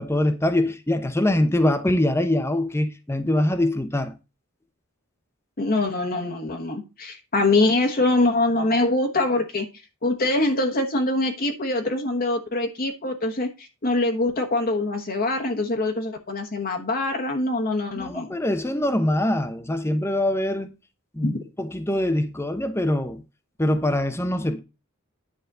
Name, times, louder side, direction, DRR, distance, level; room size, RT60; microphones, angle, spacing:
voice 1, 0.0-4.1 18.0-20.7 21.1-21.3 21.6-23.2 23.6-24.6, left 1 dB, 10° left, 0.8 m, -23 dB
voice 2, 5.6-9.7 10.0-18.3 21.2-21.4, left 2 dB, 45° left, 1.3 m, -24 dB
10.5 x 4.1 x 6.6 m
head